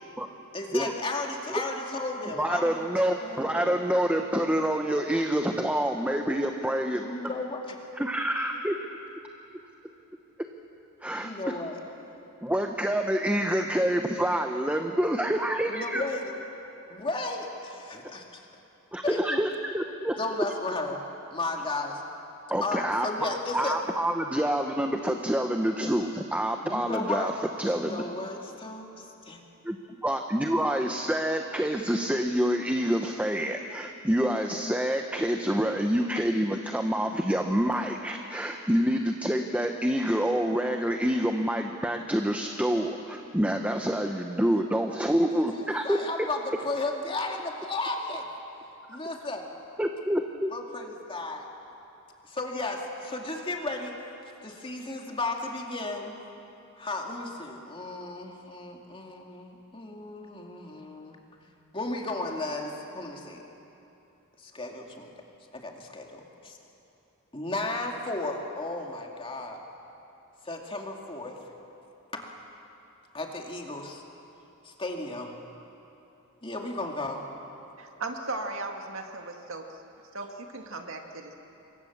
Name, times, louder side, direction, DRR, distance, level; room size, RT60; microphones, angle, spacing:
voice 1, 0.5-2.9 3.2-3.8 6.9-7.6 11.2-11.8 15.7-16.3 16.9-18.4 19.0-19.4 20.2-21.0 21.3-22.0 22.6-23.8 26.6-27.3 27.6-29.4 45.3-48.3 48.9-49.4 50.5-51.4 52.3-54.0 54.4-56.2 56.8-61.2 61.7-63.4 64.4-65.1 65.5-66.6 67.3-69.6 70.4-71.4 72.1-72.3 73.1-74.0 74.6-75.3 76.4-77.2, left 2 dB, 25° left, 1 dB, 2.4 m, -34 dB
voice 2, 2.4-7.0 7.9-8.9 11.0-11.3 12.4-16.0 18.9-20.4 22.5-27.3 27.6-28.0 29.6-29.8 30.0-46.0 49.8-50.5, equal, 5° right, 4 dB, 0.9 m, -27 dB
voice 3, 77.8-79.8 80.1-81.3, right 2 dB, 60° right, 3 dB, 2.1 m, -37 dB
27.5 x 23.5 x 7.3 m, 2.9 s
head